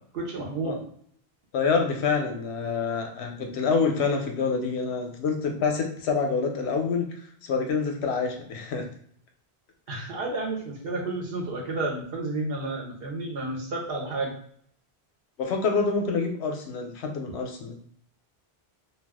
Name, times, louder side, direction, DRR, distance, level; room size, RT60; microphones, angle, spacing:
voice 1, 0.1-0.8 9.9-14.3, right 2 dB, 65° right, 0 dB, 0.9 m, -31 dB
voice 2, 1.5-7.1 7.4-8.9 15.4-17.8, left 5 dB, 90° left, 3 dB, 0.9 m, -27 dB
2.4 x 2.2 x 3.4 m, 0.62 s
omnidirectional pair, 1.1 m